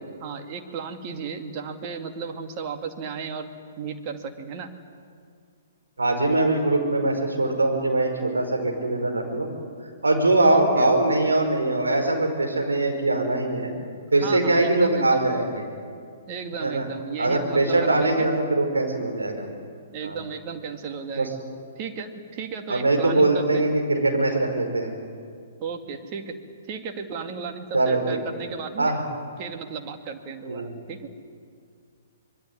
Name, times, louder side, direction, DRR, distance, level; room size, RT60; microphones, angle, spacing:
voice 1, 0.2-3.5 3.8-4.7 10.4-11.0 14.2-15.2 16.3-18.3 19.9-21.4 21.8-23.7 25.6-26.4 26.7-28.9 29.4-31.2, right 6 dB, 35° right, 5 dB, 2.3 m, -34 dB
voice 2, 6.0-9.5 10.0-13.7 14.1-15.6 16.6-16.9 17.2-19.5 20.0-20.2 21.2-21.3 22.7-24.9 27.7-28.2 28.8-29.0 30.5-30.7, right 2 dB, 75° right, 2 dB, 5.3 m, -22 dB
25.5 x 22.0 x 9.6 m, 2.2 s
figure-of-eight pair, 120°, 0 cm